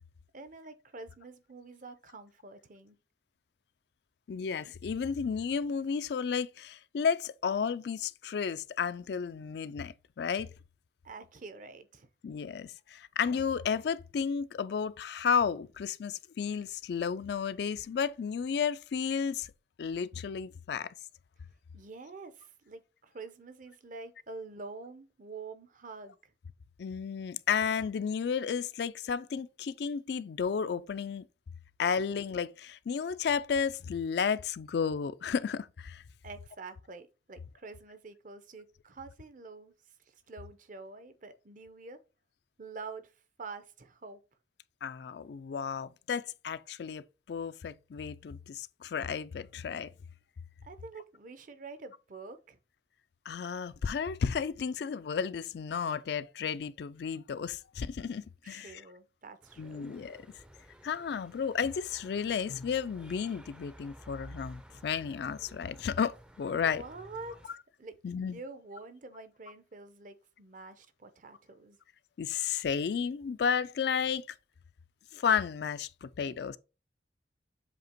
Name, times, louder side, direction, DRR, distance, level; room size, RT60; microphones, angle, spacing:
voice 1, 0.3-3.0 11.0-12.1 21.7-26.3 36.2-39.7 40.1-42.0 42.6-43.1 43.4-44.2 50.6-52.6 58.4-59.9 66.6-71.8, right 3 dB, 45° right, 0.7 m, -47 dB
voice 2, 4.3-10.5 12.2-19.5 19.8-20.9 26.8-31.2 31.8-36.0 44.8-49.9 53.3-58.8 59.6-60.3 60.8-66.8 68.0-68.4 72.2-74.3 75.1-76.6, left 6 dB, 60° left, 0.3 m, -32 dB
sound 1, 59.4-67.5, equal, 5° right, 0.4 m, -53 dB
7.6 x 2.8 x 4.4 m
head